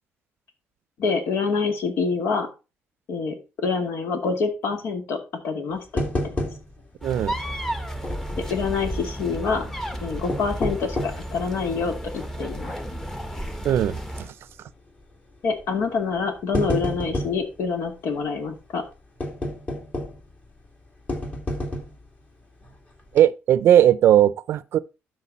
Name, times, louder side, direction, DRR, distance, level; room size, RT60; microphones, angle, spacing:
voice 1, 1.0-2.5 3.1-5.2 5.4-6.4 8.4-9.7 10.0-12.7 15.4-18.8, left 5 dB, 70° left, 2.4 m, -26 dB
sound 1, 6.0-6.9 7.2-7.3 8.0-8.7 10.1-11.3 11.9-12.0 12.6-12.9 13.1-13.2 14.4-14.7 15.6-15.7 16.2-17.5 19.2-20.3 21.1-22.1 22.6-22.7 23.1-23.2, left 1 dB, 35° left, 2.7 m, -29 dB
sound 2, 7.0-14.3, equal, 10° left, 1.1 m, -32 dB
voice 2, 7.0-7.4 13.6-14.3 23.1-24.8, right 11 dB, 70° right, 0.5 m, -18 dB
12.5 x 4.7 x 4.2 m
cardioid pair, 110°, 4 cm